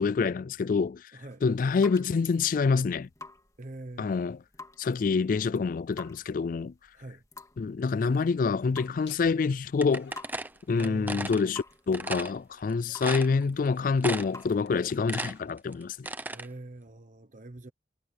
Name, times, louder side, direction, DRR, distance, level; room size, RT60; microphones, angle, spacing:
voice 1, 0.0-1.1 1.4-3.1 4.0-4.4 4.8-6.7 7.6-10.1 10.7-16.1, left 5 dB, 50° left, 0.3 m, -27 dB
voice 2, 1.1-1.4 3.6-4.2 6.9-7.2 10.7-11.5 16.3-17.7, right 2 dB, 45° right, 1.0 m, -43 dB
sound 1, 1.3-14.8, left 3 dB, 20° left, 2.2 m, -51 dB
Laughter, 8.9-16.6, left 6 dB, 80° left, 2.8 m, -61 dB
sound 2, 9.8-11.4 11.9-12.3 12.7-12.8 13.0-13.7 14.0-14.4 14.8-16.5, right 2 dB, 10° right, 0.9 m, -35 dB
head